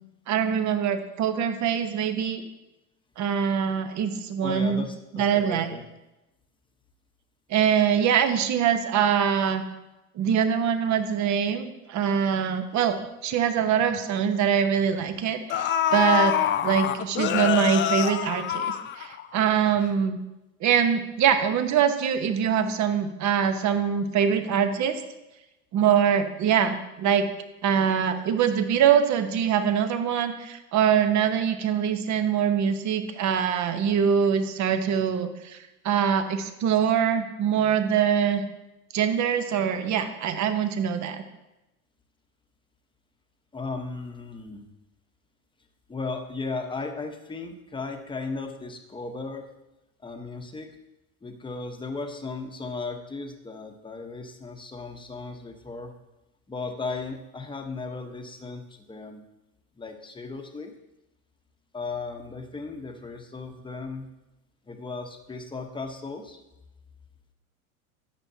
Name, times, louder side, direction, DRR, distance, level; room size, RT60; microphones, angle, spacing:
voice 1, 0.3-2.4 3.2-4.9 5.1-5.7 7.5-9.6 10.2-13.0 13.2-20.2 20.6-25.0 25.7-27.3 27.6-35.6 35.8-38.4 38.9-41.2, right 8 dB, 40° right, 8 dB, 1.2 m, -23 dB
voice 2, 4.4-5.8 43.5-44.7 45.9-49.5 50.0-50.7 51.2-55.9 56.5-59.3 59.7-60.7 61.7-64.1 64.7-66.4, left 3 dB, 10° left, 4 dB, 1.1 m, -36 dB
sound 1, 13.3-13.4 13.8-14.0 15.0-15.1 15.5-19.4 19.8-19.9, left 10 dB, 25° left, 0.5 m, -25 dB
13.5 x 9.0 x 2.8 m, 0.97 s
hypercardioid pair, 105°, 44 cm